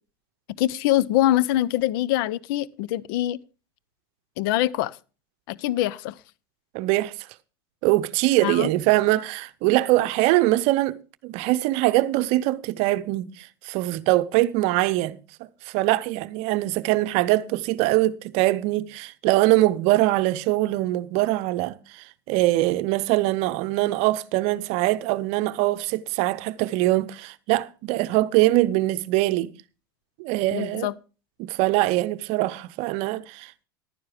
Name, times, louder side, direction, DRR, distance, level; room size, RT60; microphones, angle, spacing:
voice 1, 0.6-3.4 4.4-5.0 5.5-6.1 8.4-8.7 30.5-30.9, left 14 dB, 65° left, 0.6 m, -24 dB
voice 2, 6.7-7.1 7.8-29.5 30.2-30.9 31.4-33.7, right 17 dB, 60° right, 0.7 m, -23 dB
11.5 x 9.7 x 4.9 m
hypercardioid pair, 90°, 12 cm